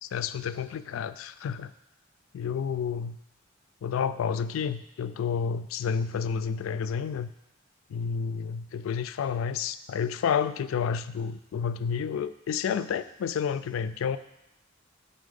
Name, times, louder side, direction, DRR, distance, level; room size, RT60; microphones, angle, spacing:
voice 1, 0.0-1.7 2.3-3.2 3.8-7.3 7.9-14.2, left 7 dB, 70° left, 13 dB, 0.3 m, -30 dB
6.1 x 4.1 x 5.2 m, 0.86 s
head